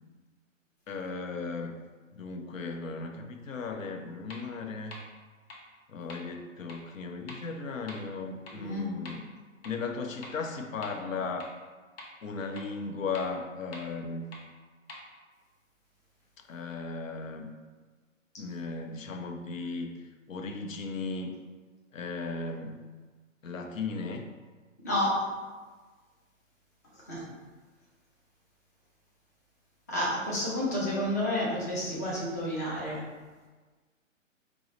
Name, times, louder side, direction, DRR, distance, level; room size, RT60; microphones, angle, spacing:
voice 1, 0.9-1.7 2.1-5.0 5.9-9.2 9.6-11.5 12.2-14.3 16.5-17.5 18.4-19.9 20.3-21.3 21.9-22.8 23.4-24.3, left 4 dB, 75° left, 5 dB, 0.7 m, -36 dB
sound 1, 3.7-3.8 4.3-4.4 4.9-5.0 5.5-5.6 6.1-6.2 6.7-6.8 7.3-7.4 7.9-8.0 8.5-8.6 9.0-9.1 9.6-9.7 10.2-10.3 10.8-10.9 11.4-11.5 12.0-12.1 12.6-12.7 13.1-13.2 13.7-13.8 14.3-14.4 14.9-15.0, left 2 dB, 50° left, 0.9 m, -44 dB
voice 2, 8.5-8.9 24.8-25.2 27.1-27.2 29.9-33.0, left 1 dB, 15° left, -6 dB, 0.3 m, -30 dB
4.6 x 2.0 x 3.8 m, 1.4 s
figure-of-eight pair, 130°, 39 cm